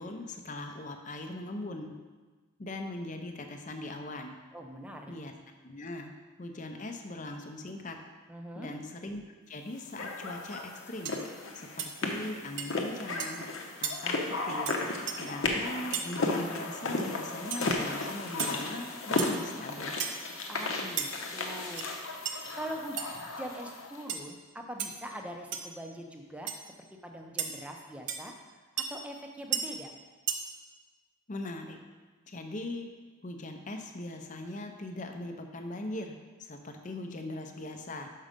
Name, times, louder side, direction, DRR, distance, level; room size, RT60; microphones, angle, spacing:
voice 1, 0.0-1.9 2.6-4.4 5.1-5.3 5.6-6.1 6.4-8.0 8.6-11.2 11.5-11.7 12.0-13.4 13.8-14.7 15.1-20.0 31.3-31.8 32.3-32.9 33.2-36.1 36.4-38.1, left 2 dB, 35° left, 5 dB, 0.6 m, -40 dB
voice 2, 4.5-5.1 8.3-8.7 20.5-21.9 22.5-23.1 23.4-26.7 27.0-28.3 28.8-29.9, equal, 5° right, 2 dB, 0.6 m, -42 dB
sound 1, 10.0-24.0, left 2 dB, 65° left, 0.9 m, -35 dB
sound 2, 10.5-10.7 11.1-11.2 11.8-11.9 12.6-12.7 13.2-13.4 13.8-14.0 14.7-14.8 15.1-15.2 15.9-16.1 17.5-17.6 18.4-18.6 19.2-19.4 20.0-20.2 21.0-21.1 21.6-21.9 22.3-22.4 23.0-23.1 24.1-24.3 24.8-24.9 25.5-25.7 26.5-26.6 27.4-27.5 28.1-28.2 28.8-28.9 29.5-29.6 30.3-30.4, right 8 dB, 55° right, 0.6 m, -33 dB
6.1 x 5.5 x 5.1 m, 1.3 s
head